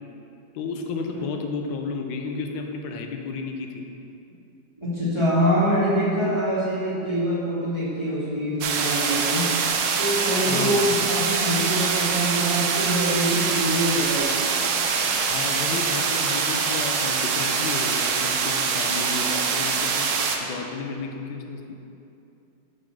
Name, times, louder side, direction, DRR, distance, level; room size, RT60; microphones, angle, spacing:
voice 1, 0.5-3.8 10.5-10.9 15.3-21.8, left 4 dB, 85° left, 3 dB, 1.3 m, -32 dB
voice 2, 4.8-9.6 10.0-14.5, equal, 20° right, -10 dB, 1.1 m, -24 dB
sound 1, 8.6-20.4, right 5 dB, 70° right, 0.9 m, -24 dB
5.0 x 4.0 x 5.8 m, 2.7 s
omnidirectional pair, 2.0 m